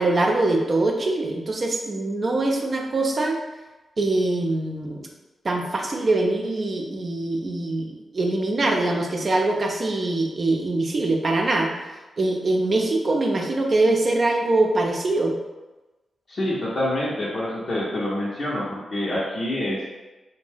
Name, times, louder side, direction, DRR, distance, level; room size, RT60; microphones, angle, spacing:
voice 1, 0.0-3.4 4.0-5.1 5.4-11.7 12.2-15.3, right 2 dB, 50° right, 0 dB, 0.5 m, -23 dB
voice 2, 16.3-19.9, left 1 dB, 60° left, -8 dB, 0.7 m, -26 dB
2.5 x 2.1 x 3.4 m, 1.1 s
supercardioid pair, 45°, 0 cm